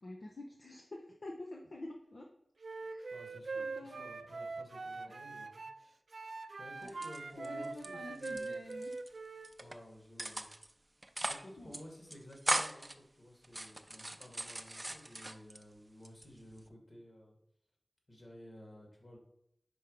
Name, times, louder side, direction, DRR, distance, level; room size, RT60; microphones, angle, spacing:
voice 1, 0.0-2.3 2.8-3.1 3.5-4.0 5.1-5.2 6.7-6.9 7.4-8.9 11.6-11.8, left 2 dB, 65° left, -1 dB, 0.8 m, -48 dB
Wind instrument woodwind instrument, 2.6-5.8 6.1-9.5, right 3 dB, 80° right, 0.4 m, -43 dB
voice 2, 3.1-5.6 6.6-8.7 9.6-10.5 11.3-17.4 18.1-19.2, equal, 50° left, 0 dB, 2.2 m, -54 dB
sound 1, 6.8-7.9 8.1-9.1 9.4-9.8 10.2-10.7 11.0-11.5 11.7-11.8 12.1-12.9 13.4-15.6 16.0-16.7, right 1 dB, 25° right, 0.5 m, -38 dB
5.4 x 4.4 x 5.3 m, 0.78 s
wide cardioid pair, 60°, 0 cm